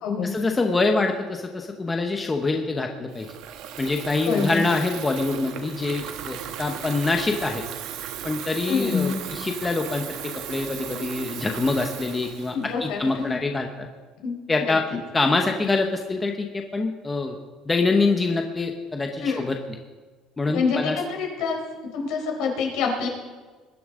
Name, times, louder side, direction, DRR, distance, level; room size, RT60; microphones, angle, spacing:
voice 1, 0.2-3.3 3.8-7.6 8.2-13.9 14.5-14.8 15.1-17.4 17.7-19.6 20.4-21.0, left 3 dB, 15° left, 3 dB, 1.0 m, -25 dB
Water tap faucet / Fill (with liquid), 3.1-13.4, right 10 dB, 65° right, 1.1 m, -36 dB
voice 2, 4.3-4.6 8.7-9.2 12.5-13.4 14.2-15.0 19.2-19.4 20.5-21.6 21.9-23.1, left 5 dB, 70° left, 1 dB, 4.2 m, -26 dB
21.5 x 11.0 x 3.8 m, 1.4 s
cardioid pair, 150°, 0 cm